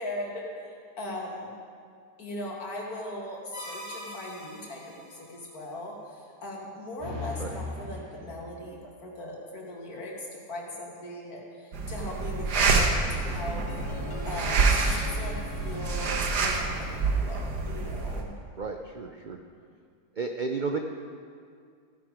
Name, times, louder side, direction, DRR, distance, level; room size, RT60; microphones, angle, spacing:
voice 1, 0.0-1.5 2.2-13.7 13.9-16.1 16.4-18.3, left 1 dB, 60° left, -2 dB, 2.6 m, -39 dB
sound 1, 3.5-5.2 7.0-8.6, left 2 dB, 15° right, 2.2 m, -39 dB
sound 2, 11.7-18.2, right 4 dB, 80° right, 1.7 m, -27 dB
sound 3, 13.3-17.3, left 2 dB, 90° left, 1.7 m, -43 dB
voice 2, 18.6-19.4 20.1-20.8, right 4 dB, 65° right, 4 dB, 0.4 m, -32 dB
15.0 x 10.5 x 5.0 m, 2.2 s
omnidirectional pair, 1.7 m